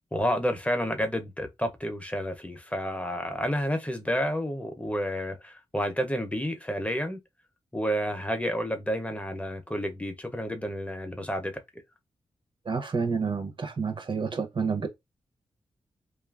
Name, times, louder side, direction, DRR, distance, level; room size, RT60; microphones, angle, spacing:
voice 1, 0.1-7.2 7.7-11.6, equal, 10° left, 0.6 m, -30 dB
voice 2, 12.6-14.9, right 5 dB, 50° right, 0.7 m, -29 dB
2.6 x 2.4 x 2.3 m
cardioid pair, 60°, 11 cm